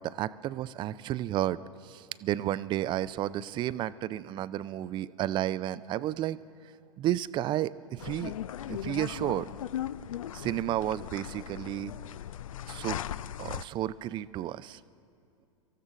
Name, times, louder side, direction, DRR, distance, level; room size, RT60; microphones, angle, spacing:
voice 1, 0.0-6.4 7.0-8.3 8.7-9.5 10.3-11.9 12.7-13.0 13.4-14.8, right 13 dB, 25° right, 17 dB, 0.4 m, -32 dB
sound 1, 8.0-13.6, left 11 dB, 70° left, 0.4 m, -38 dB
25.0 x 14.5 x 3.7 m, 2.6 s
figure-of-eight pair, 95°, 18 cm